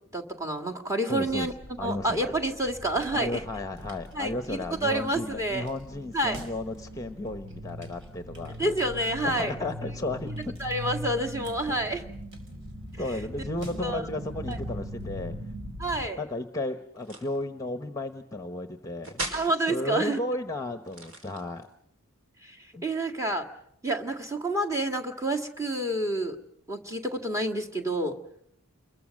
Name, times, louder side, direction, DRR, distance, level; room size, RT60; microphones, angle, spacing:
voice 1, 0.1-1.5 1.8-3.4 4.1-5.7 6.1-6.4 8.6-9.5 10.6-12.0 13.8-14.1 14.5-14.6 15.8-16.2 19.3-20.2 22.4-22.6 22.8-23.5 23.8-26.4 26.7-28.2, right 1 dB, 15° right, 4 dB, 1.9 m, -28 dB
voice 2, 1.1-1.5 1.8-2.3 3.1-8.7 9.2-10.6 13.0-15.3 16.2-19.2 19.7-21.7 22.7-22.8, left 2 dB, 15° left, 9 dB, 1.0 m, -34 dB
sound 1, 1.3-16.1, equal, 60° right, 4.8 m, -41 dB
sound 2, 17.0-17.4 19.0-19.5 20.8-21.7, right 2 dB, 85° right, 5.0 m, -37 dB
28.5 x 22.0 x 6.5 m, 0.73 s
head